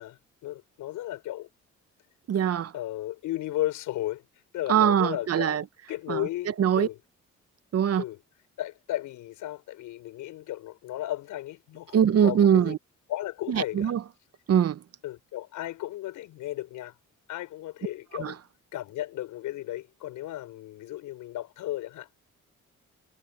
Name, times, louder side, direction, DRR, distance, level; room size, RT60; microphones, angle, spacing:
voice 1, 0.0-1.5 2.7-4.2 4.5-5.6 5.9-7.0 8.0-8.2 8.6-12.7 13.1-13.9 15.0-16.9 17.3-18.4 18.7-22.1, left 14 dB, 90° left, 6.3 m, -34 dB
voice 2, 2.3-2.7 4.7-5.6 6.1-6.3 6.6-6.9 7.7-8.0 11.9-12.8 13.5-14.0 14.5-14.8 18.2-18.3, right 9 dB, 55° right, 1.0 m, -22 dB
cardioid pair, 90°, 30 cm